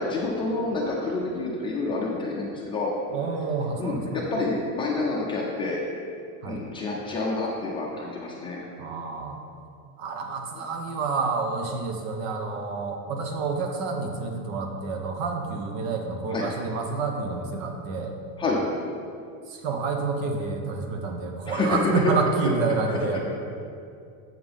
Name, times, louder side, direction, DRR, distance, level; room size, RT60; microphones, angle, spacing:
voice 1, 0.0-2.9 3.8-5.8 6.5-8.6 16.3-16.5 18.4-18.6 21.5-22.0 23.1-23.2, left 3 dB, 15° left, -3 dB, 0.5 m, -28 dB
voice 2, 3.1-4.0 6.4-6.6 8.8-9.4 10.0-18.1 19.5-23.2, right 4 dB, 75° right, 4 dB, 1.1 m, -29 dB
7.9 x 3.7 x 6.7 m, 2.4 s
cardioid pair, 175°, 40 cm